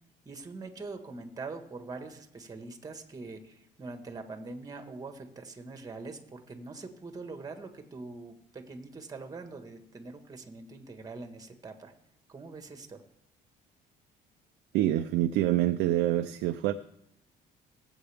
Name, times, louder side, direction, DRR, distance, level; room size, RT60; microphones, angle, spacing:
voice 1, 0.2-11.9 12.3-13.0, right 3 dB, 20° right, 1.6 m, -43 dB
voice 2, 14.7-16.7, right 13 dB, 90° right, 0.6 m, -26 dB
20.0 x 8.0 x 3.5 m
cardioid pair, 110°, 17 cm